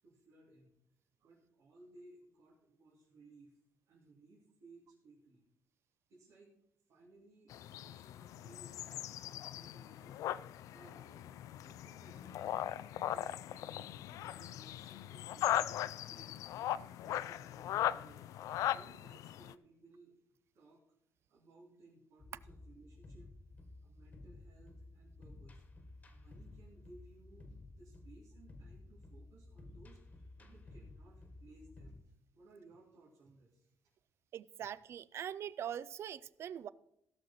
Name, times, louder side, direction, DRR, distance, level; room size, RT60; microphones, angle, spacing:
voice 1, 0.0-0.7 1.2-3.6 3.9-5.4 6.1-6.6 6.9-10.2 10.7-11.3 11.6-12.5 12.9-16.4 16.9-18.3 18.7-20.2 20.5-20.8 21.3-23.3 23.8-25.6 26.1-33.7, right 2 dB, 80° right, 2.9 m, -61 dB
sound 1, 7.5-19.5, left 12 dB, 90° left, 0.4 m, -39 dB
sound 2, 22.2-32.0, left 2 dB, 25° left, 1.3 m, -54 dB
voice 2, 34.3-36.7, right 9 dB, 50° right, 0.4 m, -42 dB
16.5 x 6.5 x 4.3 m
cardioid pair, 155°, 6 cm